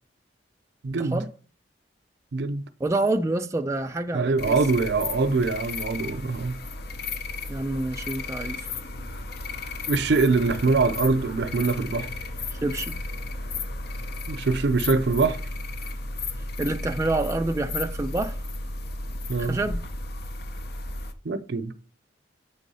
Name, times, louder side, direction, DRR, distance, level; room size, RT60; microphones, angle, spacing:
voice 1, 0.8-1.2 2.3-2.7 4.1-6.6 9.9-12.1 14.3-15.4 19.3-19.6 21.2-21.7, right 3 dB, 65° right, 0.5 m, -23 dB
voice 2, 2.8-4.6 7.5-8.6 12.6-13.0 16.6-18.4 19.4-19.8, right 2 dB, 15° right, 0.4 m, -27 dB
sound 1, 4.4-21.1, left 3 dB, 60° left, 0.6 m, -34 dB
8.3 x 3.5 x 5.4 m
head